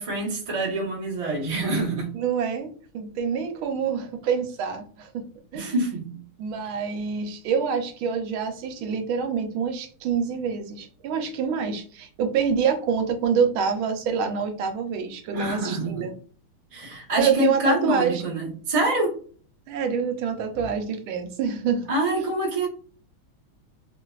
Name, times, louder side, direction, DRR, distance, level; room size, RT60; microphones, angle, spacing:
voice 1, 0.0-2.1 5.5-6.2 15.3-16.1 16.7-19.1 21.9-22.7, right 1 dB, 50° right, -4 dB, 0.4 m, -26 dB
voice 2, 2.1-5.3 5.5-5.7 6.4-16.1 17.2-18.2 19.7-21.8, right 6 dB, 75° right, 5 dB, 1.4 m, -26 dB
3.4 x 2.5 x 2.3 m, 0.43 s
omnidirectional pair, 2.4 m